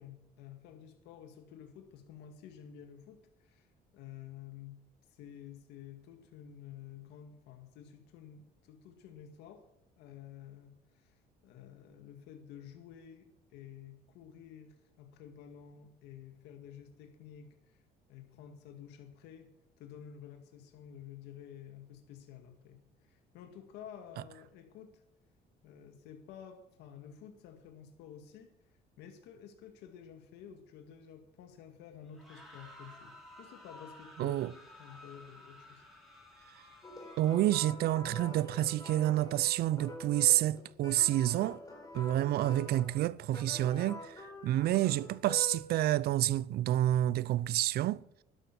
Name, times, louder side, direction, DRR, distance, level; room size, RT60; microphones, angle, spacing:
voice 1, 0.0-3.7 3.9-4.8 5.1-9.7 10.0-17.8 18.1-19.5 19.8-25.0 25.6-28.5 29.0-35.8, left 9 dB, 90° left, 2.1 m, -51 dB
sound 1, 32.1-37.8, left 1 dB, ahead, 7.2 m, -54 dB
voice 2, 34.2-34.5 37.2-41.6 41.9-48.0, right 14 dB, 70° right, 0.6 m, -29 dB
sound 2, 36.8-45.6, left 2 dB, 20° left, 4.2 m, -46 dB
12.5 x 11.5 x 6.1 m
cardioid pair, 110°, 17 cm